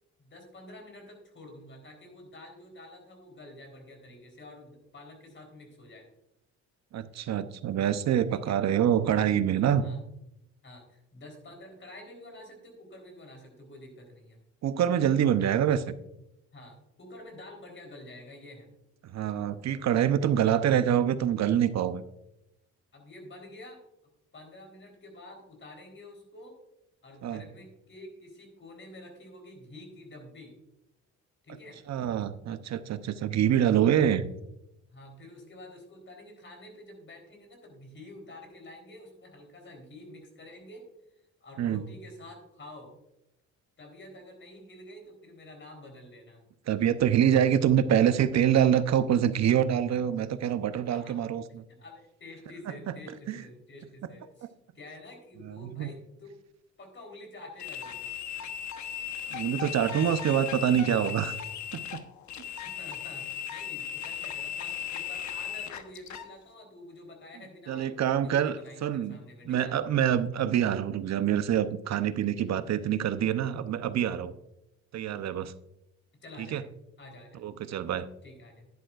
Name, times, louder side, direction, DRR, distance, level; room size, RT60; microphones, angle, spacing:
voice 1, 0.2-6.1 8.3-8.6 9.8-10.0 10.6-14.4 16.5-18.7 22.9-23.8 24.3-26.6 27.0-30.5 31.4-31.8 34.9-40.8 41.4-42.9 43.8-46.4 50.9-51.2 51.8-54.5 54.7-56.4 56.8-58.1 62.6-69.7 76.1-76.7 77.0-77.4 78.2-78.7, left 1 dB, 40° left, 3 dB, 3.9 m, -48 dB
voice 2, 6.9-9.8 14.6-15.9 19.0-22.0 27.2-27.4 31.9-34.2 41.6-41.8 46.7-51.6 52.7-53.0 53.3-53.4 55.4-55.9 59.3-61.3 61.7-62.0 67.7-69.2 69.4-74.3 74.9-75.5 76.4-76.6 77.4-78.1, right 9 dB, 60° right, 12 dB, 0.8 m, -26 dB
sound 1, 57.6-66.3, left 9 dB, 70° left, 1.1 m, -37 dB
11.0 x 10.5 x 2.5 m, 0.84 s
cardioid pair, 90°, 30 cm